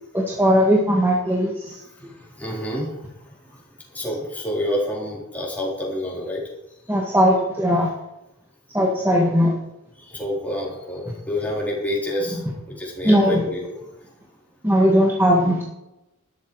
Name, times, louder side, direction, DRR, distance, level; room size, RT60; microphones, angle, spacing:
voice 1, 0.1-1.8 6.9-7.9 8.7-9.5 13.0-13.4 14.6-15.6, equal, 10° right, -2 dB, 1.8 m, -18 dB
voice 2, 2.4-3.0 3.9-6.4 10.1-12.4 12.8-13.7, left 1 dB, 5° left, -4 dB, 4.0 m, -27 dB
13.0 x 11.5 x 4.9 m, 0.90 s
head